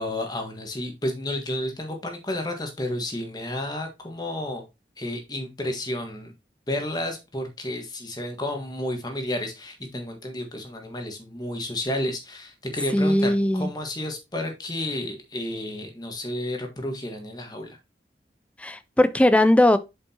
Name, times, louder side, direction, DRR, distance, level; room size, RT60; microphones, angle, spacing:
voice 1, 0.0-4.6 5.0-6.3 6.7-17.8, left 1 dB, 25° left, 1.5 m, -31 dB
voice 2, 12.9-13.7 18.6-19.8, left 1 dB, 5° left, 0.4 m, -19 dB
7.5 x 5.2 x 2.9 m
head